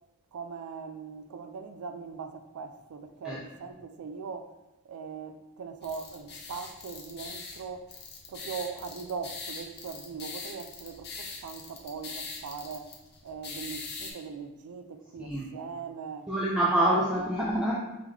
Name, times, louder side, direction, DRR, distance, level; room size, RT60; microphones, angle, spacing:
voice 1, 0.3-4.5 4.8-7.9 8.3-12.9 13.2-16.3 16.8-17.3, right 5 dB, 75° right, 0.4 m, -40 dB
sound 1, 5.8-14.1, left 4 dB, 50° left, 0.6 m, -42 dB
voice 2, 15.2-15.5 16.3-17.7, right 1 dB, 5° right, 0.3 m, -26 dB
3.6 x 3.4 x 3.2 m
head